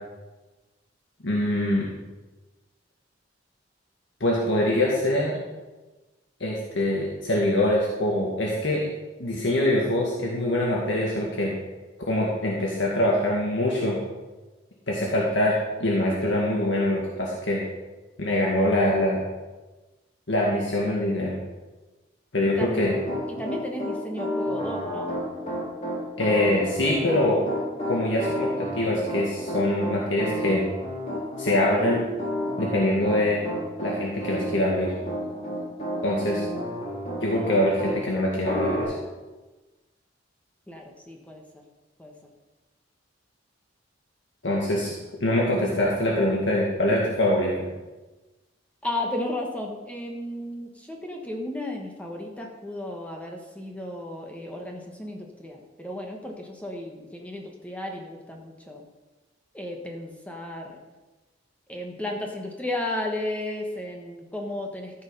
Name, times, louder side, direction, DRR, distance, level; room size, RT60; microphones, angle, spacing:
voice 1, 1.2-1.9 4.2-5.4 6.4-8.9 9.2-11.6 12.1-14.0 14.9-17.6 18.2-19.2 20.3-21.4 22.3-23.0 26.2-27.4 27.9-30.7 31.4-32.0 32.6-33.4 33.8-34.9 36.0-36.4 37.2-38.9 44.4-44.9 45.2-47.7, left 1 dB, 75° left, -3 dB, 1.8 m, -24 dB
voice 2, 22.4-22.9 23.3-25.1 40.7-41.6 42.0-42.1 48.8-58.8 59.5-60.8 61.7-65.0, left 1 dB, 10° left, 1 dB, 1.2 m, -34 dB
Piano, 22.8-38.0 38.4-38.8, equal, 40° left, 3.6 m, -31 dB
14.0 x 6.5 x 5.3 m, 1.2 s
head